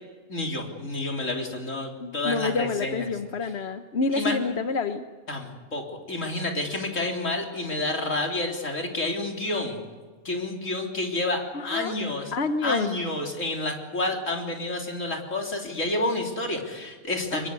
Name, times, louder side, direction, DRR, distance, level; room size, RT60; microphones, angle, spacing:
voice 1, 0.3-3.0 4.1-4.3 5.3-9.8 10.2-12.3 12.6-17.5, left 2 dB, 80° left, 1 dB, 4.0 m, -29 dB
voice 2, 2.0-5.1 11.5-11.9 12.3-12.9 17.3-17.5, left 4 dB, 55° left, 8 dB, 1.2 m, -28 dB
24.0 x 22.5 x 8.3 m, 1.4 s
omnidirectional pair, 1.3 m